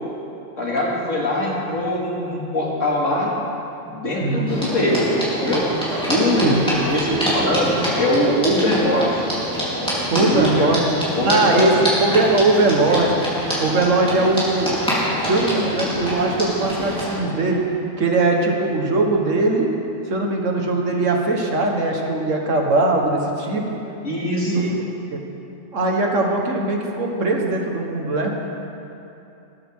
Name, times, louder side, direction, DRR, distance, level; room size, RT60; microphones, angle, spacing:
voice 1, 0.6-3.3 3.9-5.7 6.1-9.2 10.2-10.7 11.1-11.8 24.0-24.6, left 1 dB, 85° left, -4 dB, 3.0 m, -22 dB
voice 2, 4.2-4.5 6.4-6.8 10.1-10.9 11.2-13.2 13.6-14.8 15.3-17.7 18.0-19.7 20.1-23.8 24.5-24.8 25.1-25.2 25.7-28.3, right 2 dB, 80° right, 1 dB, 1.9 m, -20 dB
sound 1, 4.5-17.2, equal, 5° left, 3.8 m, -25 dB
18.5 x 14.0 x 3.8 m, 2.8 s
omnidirectional pair, 1.3 m